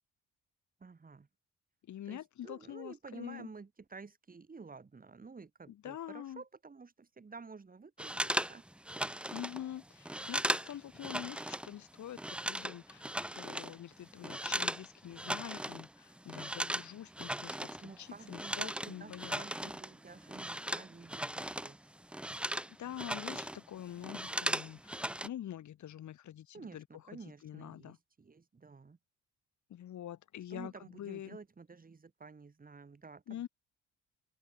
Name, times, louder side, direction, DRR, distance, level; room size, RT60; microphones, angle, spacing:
voice 1, 0.8-1.3 2.1-8.6 17.8-22.0 26.5-29.0 30.5-33.5, right 4 dB, 30° right, 3.4 m, -51 dB
voice 2, 1.9-3.5 5.7-6.4 9.3-19.4 22.3-28.0 29.7-31.4 33.3-33.5, left 11 dB, 70° left, 4.8 m, -46 dB
sound 1, 8.0-11.7 12.0-14.9 15.1-15.9 16.1-21.8 22.0-23.6 23.9-25.3, right 1 dB, 5° right, 0.9 m, -37 dB
open air
cardioid pair, 90°, 30 cm